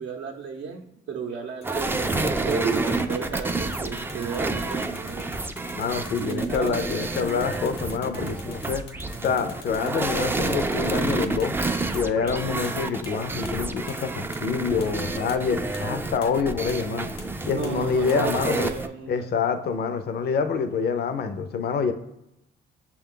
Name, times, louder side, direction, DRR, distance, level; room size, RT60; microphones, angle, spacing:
voice 1, 0.0-5.2 6.2-6.8 17.5-19.3, right 6 dB, 65° right, 1 dB, 0.6 m, -33 dB
sound 1, 1.6-12.0 12.3-12.4 12.6-12.7 13.0-13.1 13.4-13.5 13.9-14.0 14.3-14.4 14.8-14.9 15.3-15.4 15.7-15.8 16.2-16.3 16.7-16.8 17.2-17.3 17.6-17.7 18.1-18.2 18.5-18.6, left 5 dB, 85° left, 1.0 m, -45 dB
sound 2, 1.6-18.9, right 2 dB, 10° right, 0.3 m, -29 dB
voice 2, 5.7-8.8 9.2-11.6 11.9-17.1 17.5-18.7 19.1-21.9, left 6 dB, 55° left, 9 dB, 0.5 m, -26 dB
6.1 x 2.3 x 3.7 m, 0.85 s
cardioid pair, 90°, 20 cm